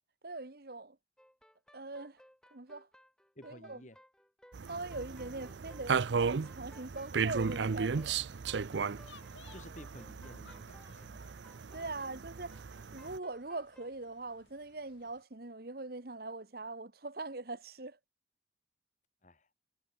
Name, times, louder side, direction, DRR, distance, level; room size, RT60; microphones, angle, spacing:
voice 1, 0.2-1.0 1.7-2.2 2.5-2.9 3.4-3.8 4.7-8.2 11.7-12.5 12.9-18.0, right 3 dB, 55° right, 1.3 m, -42 dB
sound 1, 1.2-13.9, equal, 5° left, 6.9 m, -61 dB
voice 2, 3.3-4.0 9.5-11.2 19.2-19.5, left 1 dB, 40° left, 3.2 m, -53 dB
sound 2, 4.5-13.2, right 5 dB, 75° right, 0.5 m, -35 dB
sound 3, 6.8-15.2, left 4 dB, 90° left, 7.9 m, -62 dB
head